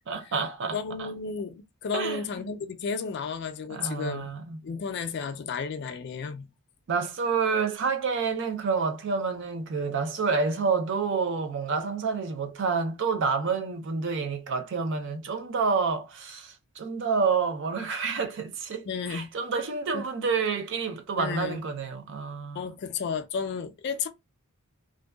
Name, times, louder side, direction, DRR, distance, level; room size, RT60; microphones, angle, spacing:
voice 1, 0.1-1.1 1.9-2.2 3.7-4.6 6.9-22.7, right 5 dB, 55° right, 0.5 m, -28 dB
voice 2, 0.7-4.3 4.6-6.5 18.9-19.3 19.9-20.0 21.2-21.6 22.5-24.1, left 5 dB, 50° left, 0.3 m, -32 dB
2.5 x 2.2 x 2.2 m
head